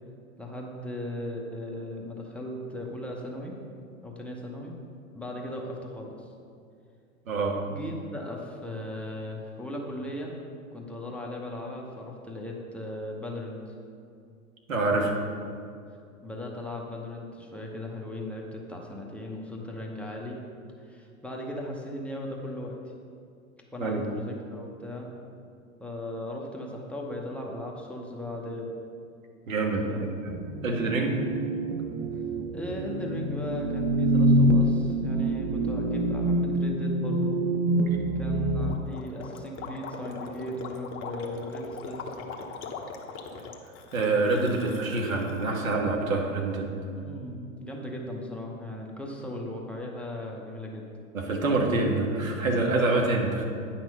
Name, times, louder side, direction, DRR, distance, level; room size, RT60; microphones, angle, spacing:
voice 1, 0.4-3.5 4.0-4.7 5.1-6.3 7.6-10.3 10.7-13.6 16.2-20.4 20.8-22.8 23.7-25.1 25.8-28.7 29.9-30.1 32.5-37.4 38.1-42.0 47.0-50.9, left 1 dB, 5° left, -2 dB, 0.9 m, -37 dB
voice 2, 7.3-7.6 14.7-15.1 23.8-24.1 29.5-30.3 30.6-31.2 43.9-46.7 51.1-53.5, right 3 dB, 70° right, 1 dB, 1.7 m, -26 dB
sound 1, 30.3-38.8, right 1 dB, 30° right, 0.5 m, -26 dB
Gurgling, 38.6-45.5, left 5 dB, 30° left, 0.9 m, -41 dB
9.7 x 6.0 x 5.4 m, 2.4 s
figure-of-eight pair, 100°, 42 cm